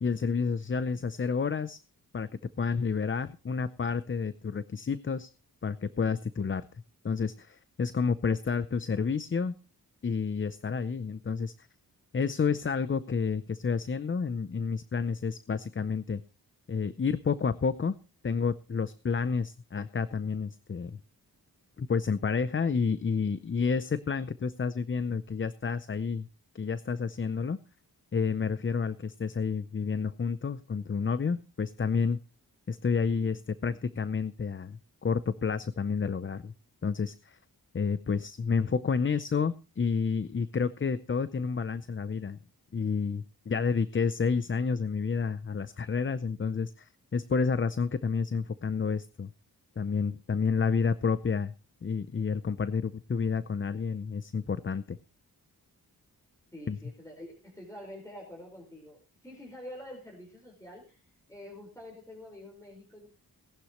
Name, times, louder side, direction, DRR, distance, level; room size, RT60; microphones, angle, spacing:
voice 1, 0.0-1.8 2.1-2.3 2.6-5.3 5.6-6.7 7.0-9.5 10.0-11.7 12.1-16.2 16.7-17.9 18.2-21.0 21.8-26.3 26.5-27.6 28.1-32.2 32.7-36.5 36.8-37.4 37.7-42.4 42.7-49.3 49.8-51.5 51.8-55.0 56.7-56.8, left 5 dB, 30° left, 14 dB, 0.6 m, -30 dB
voice 2, 56.5-63.1, left 1 dB, 10° left, 0 dB, 4.8 m, -47 dB
18.5 x 11.5 x 3.1 m, 0.32 s
wide cardioid pair, 95°, 38 cm